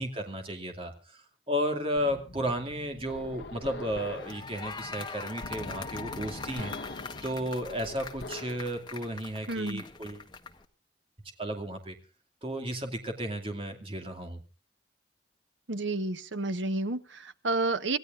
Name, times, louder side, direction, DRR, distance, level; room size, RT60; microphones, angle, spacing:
voice 1, 0.0-6.7 7.2-10.2 11.4-11.9 12.4-14.4, equal, 30° right, 4 dB, 2.4 m, -33 dB
sound 1, 2.0-8.7, left 2 dB, 65° left, 1.2 m, -43 dB
sound 2, 4.0-10.6, left 4 dB, 25° left, 1.3 m, -42 dB
voice 2, 9.5-9.8 15.7-18.0, right 2 dB, 80° right, 11 dB, 1.2 m, -30 dB
26.5 x 16.0 x 2.6 m, 0.34 s
head